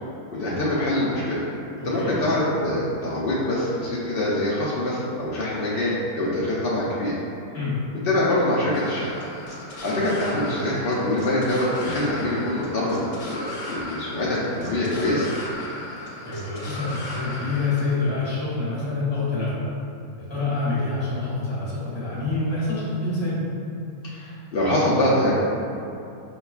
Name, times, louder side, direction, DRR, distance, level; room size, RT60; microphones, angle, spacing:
voice 1, 0.4-1.4 1.8-7.1 8.0-9.1 9.8-15.3 24.0-25.3, left 1 dB, 80° left, -7 dB, 0.5 m, -24 dB
voice 2, 1.8-2.2 7.5-7.8 16.2-19.5 20.3-23.4, left 3 dB, 25° left, -9 dB, 0.8 m, -26 dB
sound 1, 8.7-17.9, left 1 dB, 65° left, 1.0 m, -36 dB
5.3 x 2.2 x 2.3 m, 2.7 s
omnidirectional pair, 1.5 m